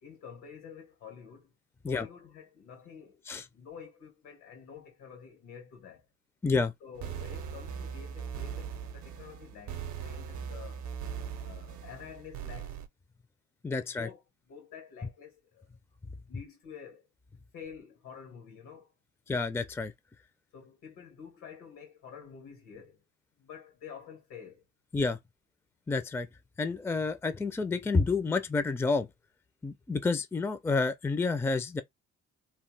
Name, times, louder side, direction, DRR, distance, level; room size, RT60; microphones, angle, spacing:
voice 1, 0.0-1.5 1.8-3.2 3.5-6.0 6.8-10.9 11.4-12.8 13.7-15.7 16.3-17.1 17.5-18.9 20.5-23.0 23.4-24.6, left 7 dB, 85° left, 1.7 m, -49 dB
sound 1, 7.0-12.9, right 7 dB, 70° right, 0.6 m, -40 dB
voice 2, 13.6-14.1 19.3-19.9 24.9-25.2 25.9-26.3 26.6-29.1 29.6-31.8, left 4 dB, 10° left, 0.4 m, -29 dB
2.9 x 2.0 x 3.2 m
cardioid pair, 90°, 30 cm